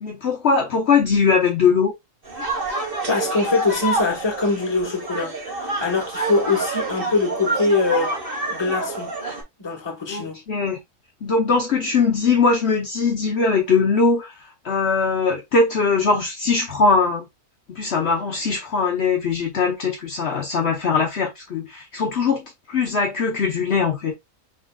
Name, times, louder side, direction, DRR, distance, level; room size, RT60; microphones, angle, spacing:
voice 1, 0.0-1.9 10.1-10.8 11.2-14.3 14.6-17.3 17.7-24.1, left 4 dB, 55° left, 1.1 m, -21 dB
sound 1, 2.2-9.4, right 2 dB, 45° right, 1.6 m, -27 dB
voice 2, 2.6-8.2 8.5-9.1 9.6-10.4, left 3 dB, 20° left, 1.2 m, -23 dB
4.8 x 3.8 x 2.3 m
omnidirectional pair, 1.4 m